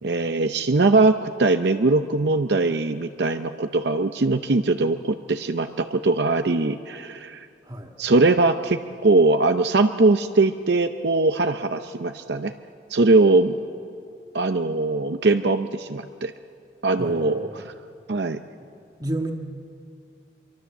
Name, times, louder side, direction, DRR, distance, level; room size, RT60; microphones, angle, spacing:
voice 1, 0.0-7.5 8.0-12.5 12.9-13.5 14.3-16.3 16.8-17.6 18.1-18.4, right 3 dB, 60° right, 8 dB, 0.6 m, -21 dB
voice 2, 17.0-17.6 19.0-19.3, right 1 dB, 20° right, 3 dB, 1.7 m, -31 dB
25.0 x 23.5 x 7.2 m, 2.5 s
head